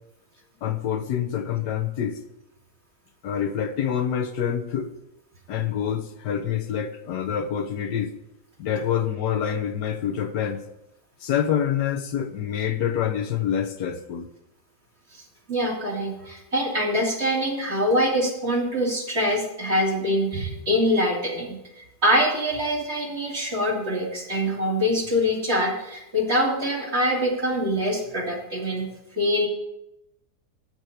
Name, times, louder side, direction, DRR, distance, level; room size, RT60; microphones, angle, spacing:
voice 1, 0.6-2.2 3.2-4.9 5.5-8.1 8.6-10.6 11.2-14.3, left 9 dB, 85° left, 1.5 m, -26 dB
voice 2, 15.5-28.9 29.1-29.5, equal, 40° right, 3.1 m, -24 dB
13.5 x 4.7 x 6.8 m
omnidirectional pair, 1.7 m